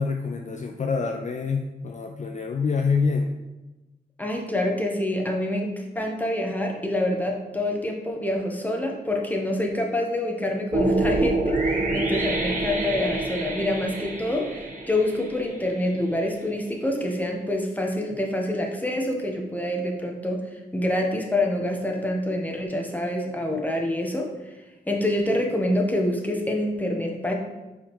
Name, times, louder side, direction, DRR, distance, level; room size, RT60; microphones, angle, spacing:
voice 1, 0.0-3.4, left 4 dB, 40° left, 3 dB, 0.4 m, -26 dB
voice 2, 4.2-14.6 14.9-20.4 20.7-24.3 24.9-27.3, left 1 dB, 10° left, 1 dB, 1.0 m, -26 dB
sound 1, 10.7-15.9, right 2 dB, 45° right, 1.0 m, -27 dB
4.5 x 3.7 x 3.1 m, 1.1 s
supercardioid pair, 40°, 18 cm